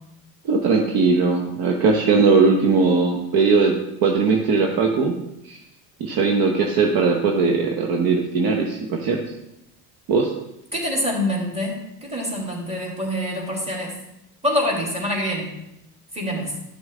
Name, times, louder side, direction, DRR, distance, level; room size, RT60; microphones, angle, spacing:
voice 1, 0.4-5.1 5.4-5.6 6.0-9.2 10.1-10.3, right 4 dB, 50° right, 2 dB, 1.2 m, -19 dB
voice 2, 10.7-14.0 14.4-15.6 16.1-16.5, left 1 dB, 15° right, -2 dB, 3.0 m, -25 dB
11.0 x 6.2 x 3.7 m, 0.85 s
hypercardioid pair, 70°, 46 cm